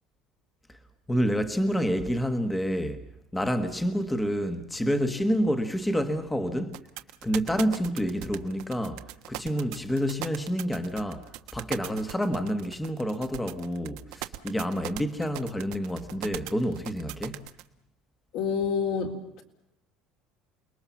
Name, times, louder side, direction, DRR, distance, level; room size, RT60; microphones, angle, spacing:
voice 1, 1.1-3.0 3.3-6.8 7.2-9.0 9.3-11.2 11.5-17.5, equal, 5° left, 1.3 m, -28 dB
sound 1, 6.7-17.6, right 17 dB, 75° right, 1.3 m, -38 dB
voice 2, 18.3-19.4, left 6 dB, 55° left, 3.6 m, -28 dB
29.0 x 21.0 x 7.2 m
cardioid pair, 160°, 0 cm